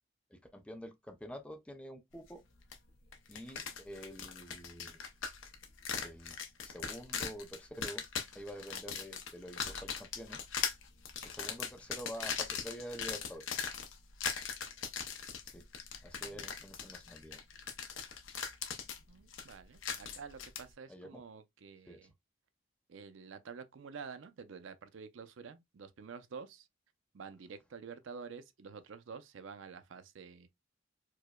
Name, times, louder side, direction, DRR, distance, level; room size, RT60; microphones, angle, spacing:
voice 1, 0.3-2.4 3.3-5.0 6.0-8.0 8.3-10.4 11.2-13.5 15.4-15.7 16.0-17.4 20.9-21.2 21.9-22.1, equal, 5° left, 0.4 m, -47 dB
sound 1, 2.7-2.8 3.1-20.6, left 7 dB, 75° left, 0.6 m, -40 dB
voice 2, 19.1-22.1 22.9-26.7 27.1-30.5, right 5 dB, 75° right, 0.4 m, -49 dB
4.7 x 2.1 x 2.2 m
head